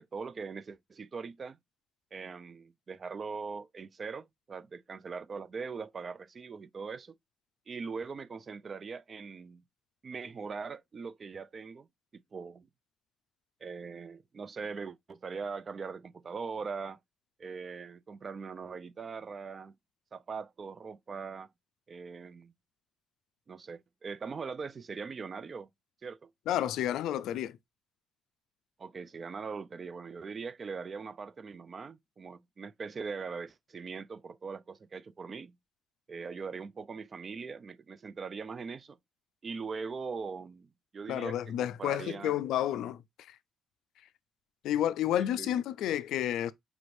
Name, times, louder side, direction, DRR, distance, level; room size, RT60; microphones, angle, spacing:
voice 1, 0.0-1.6 2.1-7.1 7.7-9.6 10.0-11.9 12.3-12.7 13.6-17.0 17.4-19.7 20.1-21.5 21.9-22.5 23.5-25.7 26.0-26.3 28.8-35.6 36.1-39.0 39.4-42.4 45.2-45.5, right 5 dB, 40° right, 0.3 m, -41 dB
voice 2, 26.5-27.6 41.1-43.0 43.3-43.4 44.6-46.5, left 11 dB, 85° left, 0.3 m, -30 dB
5.0 x 2.6 x 3.1 m
cardioid pair, 90°, 0 cm